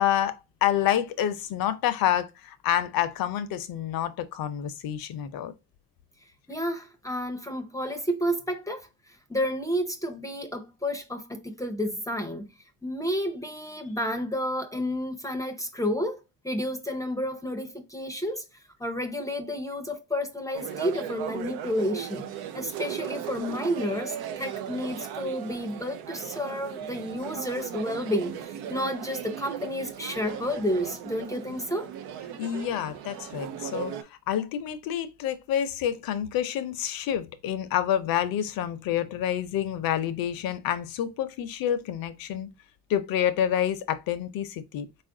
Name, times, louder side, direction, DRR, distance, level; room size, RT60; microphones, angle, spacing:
voice 1, 0.0-5.5 32.4-42.5 42.9-44.9, left 10 dB, 70° left, 0.6 m, -28 dB
voice 2, 6.5-12.5 12.8-16.2 16.4-18.4 18.8-22.3 22.5-31.9, equal, 10° left, 0.5 m, -31 dB
sound 1, 20.5-34.0, right 10 dB, 90° right, 0.5 m, -37 dB
4.0 x 2.5 x 3.7 m
cardioid pair, 100°, 36 cm